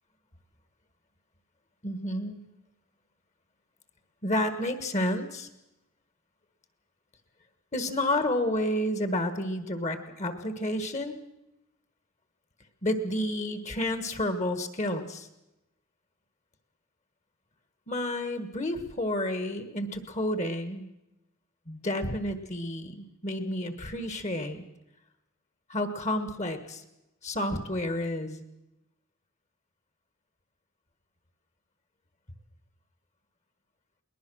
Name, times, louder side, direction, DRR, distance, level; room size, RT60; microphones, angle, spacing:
voice 1, 1.8-2.5 4.2-5.5 7.7-11.2 12.8-15.3 17.9-20.8 21.7-24.6 25.7-26.8 27.2-28.4, left 1 dB, 30° left, 9 dB, 1.5 m, -30 dB
21.0 x 20.0 x 6.3 m, 0.92 s
head